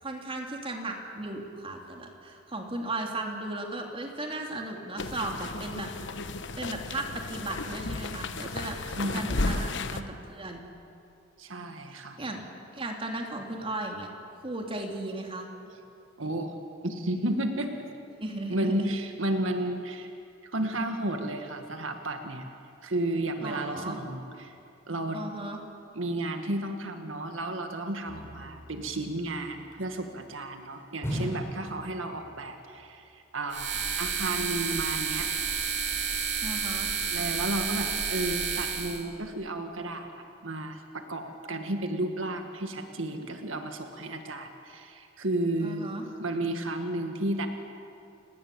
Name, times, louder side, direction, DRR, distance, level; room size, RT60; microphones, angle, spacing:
voice 1, 0.0-5.9 6.6-8.8 9.1-10.6 11.9-12.4 12.7-14.1 14.4-15.5 18.2-18.9 23.4-24.0 25.1-25.6 36.4-36.9 45.6-46.0, right 2 dB, 30° right, 1 dB, 3.3 m, -36 dB
sound 1, 5.0-10.0, left 3 dB, 65° left, 1.1 m, -34 dB
voice 2, 9.0-9.8 11.4-12.2 16.2-16.5 16.8-17.9 18.5-20.1 20.5-22.5 22.8-24.6 24.9-25.2 25.9-35.3 37.1-45.9 46.2-47.5, right 1 dB, 85° right, 5 dB, 1.9 m, -33 dB
sound 2, 28.1-29.8 31.0-32.6 32.8-32.9, equal, 15° left, 6.7 m, -38 dB
sound 3, 33.5-39.0, right 6 dB, 65° right, 3.5 m, -30 dB
30.0 x 18.5 x 8.7 m, 2.6 s
head